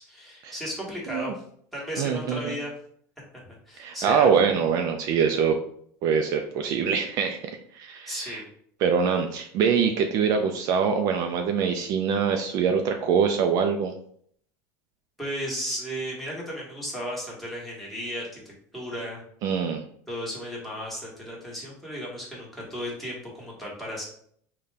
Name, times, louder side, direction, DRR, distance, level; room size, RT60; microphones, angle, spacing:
voice 1, 0.0-1.3 1.7-2.7 3.6-4.3 8.1-8.5 15.2-19.2 20.1-24.0, equal, ahead, -5 dB, 1.2 m, -34 dB
voice 2, 2.0-2.6 3.8-5.6 6.0-8.4 8.8-13.9 19.4-19.8, right 6 dB, 50° right, 5 dB, 0.3 m, -24 dB
3.9 x 2.2 x 3.3 m, 0.63 s
supercardioid pair, 140°, 8 cm